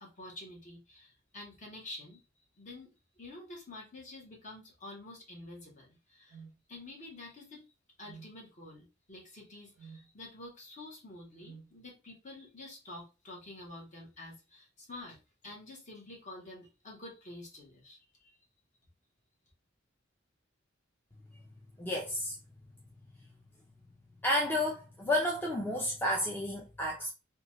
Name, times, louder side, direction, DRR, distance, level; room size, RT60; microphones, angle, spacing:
voice 1, 0.0-2.2 2.6-6.4 6.7-7.6 8.0-15.2 15.4-18.4, left 2 dB, 40° left, 1.0 m, -48 dB
sound 1, 6.3-6.6 8.0-8.4 9.8-10.1 11.4-11.7, right 5 dB, 75° right, 0.3 m, -50 dB
voice 2, 21.8-22.4 24.2-27.1, left 1 dB, 10° left, 0.4 m, -31 dB
2.9 x 2.3 x 2.9 m
head